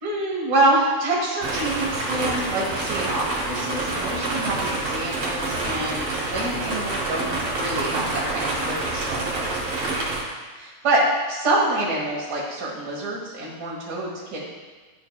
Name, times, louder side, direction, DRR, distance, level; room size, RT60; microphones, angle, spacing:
voice 1, 0.0-9.6 10.5-11.0 11.3-14.4, right 2 dB, 65° right, -5 dB, 1.0 m, -26 dB
sound 1, 1.4-10.2, right 2 dB, 50° right, 1.9 m, -27 dB
10.5 x 5.0 x 2.3 m, 1.4 s
omnidirectional pair, 3.8 m